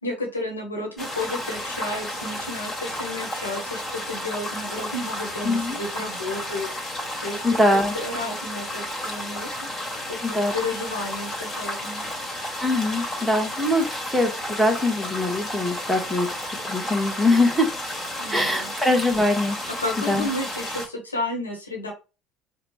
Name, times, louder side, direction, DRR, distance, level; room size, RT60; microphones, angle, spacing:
voice 1, 0.0-6.7 7.2-7.4 7.7-9.5 10.1-12.0 18.2-18.7 19.7-21.9, left 2 dB, 90° left, 1 dB, 1.2 m, -32 dB
sound 1, 1.0-20.9, left 1 dB, 30° left, 1.8 m, -32 dB
voice 2, 5.4-5.8 7.4-7.9 10.2-10.5 12.6-16.3 16.6-17.7 18.3-19.7 20.1-20.3, left 1 dB, ahead, 3 dB, 1.4 m, -22 dB
4.8 x 2.4 x 3.4 m, 0.30 s
figure-of-eight pair, 65°, 0 cm